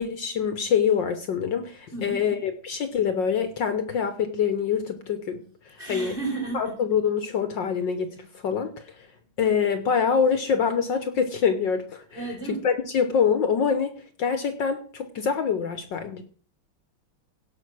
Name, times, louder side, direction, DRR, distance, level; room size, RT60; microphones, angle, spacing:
voice 1, 0.0-5.4 5.7-6.2 6.5-8.9 9.4-13.9 14.2-16.2, left 6 dB, 60° left, 9 dB, 1.6 m, -25 dB
voice 2, 5.8-6.7 12.1-12.6, right 3 dB, 25° right, 2 dB, 4.4 m, -32 dB
17.0 x 6.1 x 6.2 m, 0.43 s
omnidirectional pair, 2.4 m